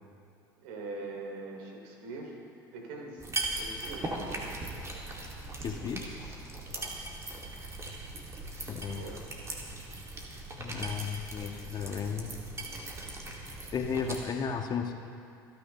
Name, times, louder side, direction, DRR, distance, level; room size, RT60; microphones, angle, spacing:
voice 1, 0.6-2.3 2.7-3.2 3.6-4.1 6.7-7.0 9.0-9.2, right 3 dB, 70° right, 1 dB, 2.9 m, -42 dB
sound 1, 3.2-14.2, right 2 dB, 25° right, 2.9 m, -39 dB
voice 2, 5.6-6.1 8.7-9.1 10.6-12.3 13.7-14.9, left 6 dB, 40° left, 3 dB, 1.6 m, -34 dB
26.5 x 10.0 x 3.4 m, 2.5 s
hypercardioid pair, 75°, 11 cm